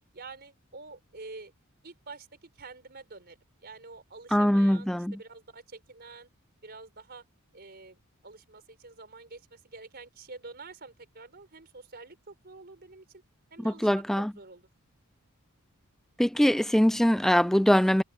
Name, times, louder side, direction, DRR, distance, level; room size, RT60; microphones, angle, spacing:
voice 1, 0.0-1.5 1.8-3.4 3.6-6.3 6.6-7.3 7.5-13.0 13.5-14.6, right 3 dB, 45° right, 4.6 m, -47 dB
voice 2, 4.3-5.2 13.6-14.3 16.2-18.0, equal, ahead, 0.3 m, -23 dB
head